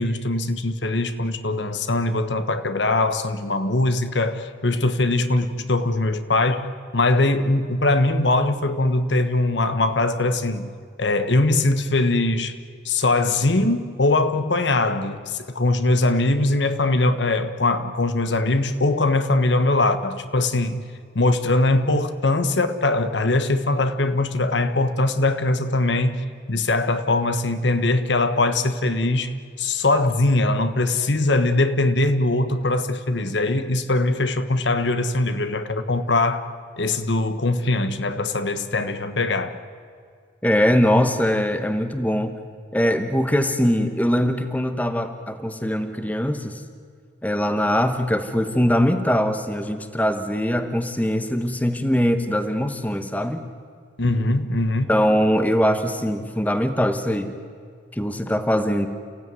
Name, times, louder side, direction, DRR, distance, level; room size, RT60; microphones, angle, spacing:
voice 1, 0.0-10.7 11.0-12.6 12.8-20.8 21.1-36.5 36.8-39.6 54.0-55.0, left 2 dB, 80° left, 1.3 m, -21 dB
voice 2, 40.4-42.4 42.7-46.6 47.2-53.4 54.9-57.4 57.9-58.9, equal, 10° left, 1.1 m, -22 dB
30.0 x 16.0 x 9.5 m
head